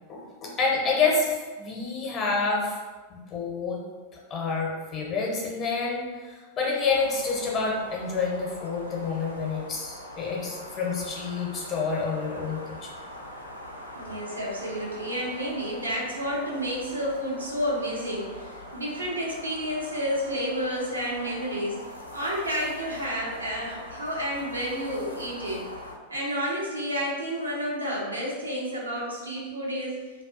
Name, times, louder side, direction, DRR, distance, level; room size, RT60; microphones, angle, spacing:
voice 1, 0.1-2.8 3.1-3.8 4.3-12.9, left 4 dB, 30° left, -2 dB, 0.6 m, -28 dB
sound 1, 6.9-26.0, left 1 dB, 85° left, 0.3 m, -43 dB
voice 2, 14.0-25.7 26.1-30.0, equal, 80° right, -3 dB, 0.5 m, -30 dB
2.3 x 2.3 x 2.4 m, 1.4 s
figure-of-eight pair, 90°, 0 cm